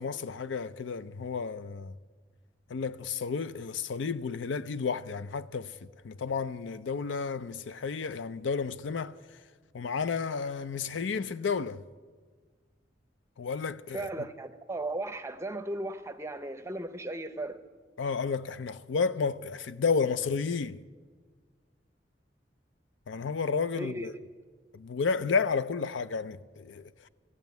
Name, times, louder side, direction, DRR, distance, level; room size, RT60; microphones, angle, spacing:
voice 1, 0.0-1.9 2.7-5.7 6.0-9.1 9.7-11.8 13.4-14.1 18.0-20.8 23.1-24.1 24.7-26.9, left 5 dB, 85° left, 0.5 m, -31 dB
voice 2, 13.9-17.6 23.8-24.1, right 2 dB, 15° right, 0.7 m, -36 dB
14.5 x 8.9 x 9.3 m
head